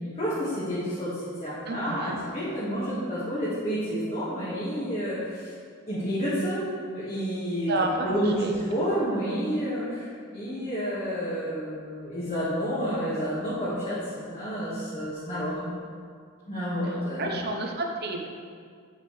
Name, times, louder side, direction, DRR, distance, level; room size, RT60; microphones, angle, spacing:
voice 1, 0.0-5.5 5.9-15.7 16.5-17.5, equal, 30° left, -11 dB, 1.7 m, -30 dB
voice 2, 1.7-2.2 7.7-8.5 17.2-18.3, right 2 dB, 45° right, 2 dB, 0.7 m, -30 dB
8.5 x 6.5 x 3.2 m, 2.1 s
head